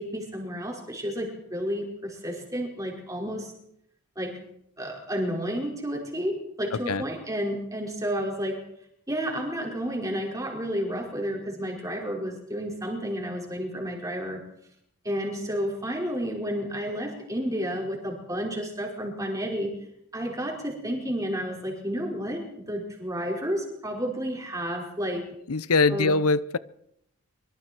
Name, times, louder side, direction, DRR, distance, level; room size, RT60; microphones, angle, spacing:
voice 1, 0.0-3.5 4.2-4.4 4.8-8.6 9.1-14.4 15.0-19.7 20.1-25.2 25.9-26.1, equal, 15° right, 5.3 m, -31 dB
voice 2, 6.7-7.0 25.5-26.6, left 3 dB, 90° left, 0.7 m, -23 dB
25.0 x 24.0 x 4.6 m
head